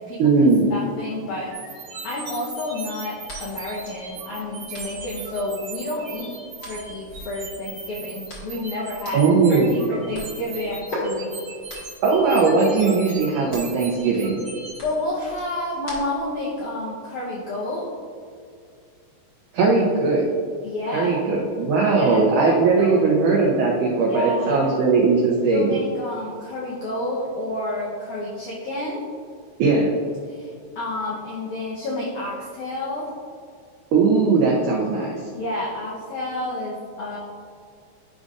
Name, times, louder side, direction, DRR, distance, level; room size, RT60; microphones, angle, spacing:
voice 1, 0.2-0.7 9.1-9.7 12.0-14.4 19.5-20.2 20.9-25.7 29.6-29.9 33.9-35.2, right 4 dB, 85° right, -3 dB, 1.7 m, -19 dB
voice 2, 0.7-1.5 2.0-6.3 6.6-11.3 14.8-17.9 20.6-21.2 21.9-23.1 24.1-24.8 25.5-29.0 30.3-33.1 35.3-37.2, left 1 dB, 85° left, -5 dB, 1.7 m, -30 dB
sound 1, 1.5-14.8, right 4 dB, 55° right, 1.7 m, -38 dB
sound 2, 3.3-16.4, left 1 dB, 45° left, 1.2 m, -39 dB
12.0 x 5.2 x 2.5 m, 2.2 s
omnidirectional pair, 4.8 m